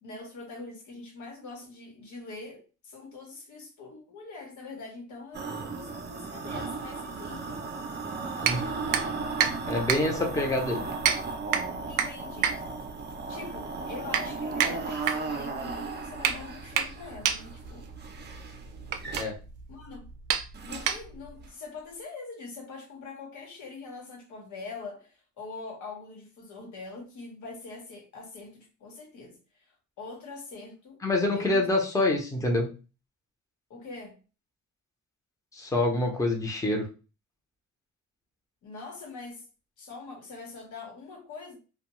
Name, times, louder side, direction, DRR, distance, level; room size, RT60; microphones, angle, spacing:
voice 1, 0.0-7.6 10.1-10.4 11.9-12.6 13.3-17.9 19.7-20.1 20.6-29.4 30.0-31.0 31.3-31.7 33.7-34.2 38.6-39.5 39.8-41.6, left 3 dB, 75° left, 1.1 m, -43 dB
sound 1, 5.3-19.2 20.5-21.0 21.4-21.5, right 4 dB, 35° right, 0.6 m, -36 dB
voice 2, 8.4-8.7 9.7-10.8 19.2-19.4 31.0-32.7 35.5-36.9, left 2 dB, 10° left, 0.7 m, -26 dB
sound 2, 8.4-21.4, right 8 dB, 85° right, 0.5 m, -31 dB
2.3 x 2.2 x 3.0 m
cardioid pair, 90°, 30 cm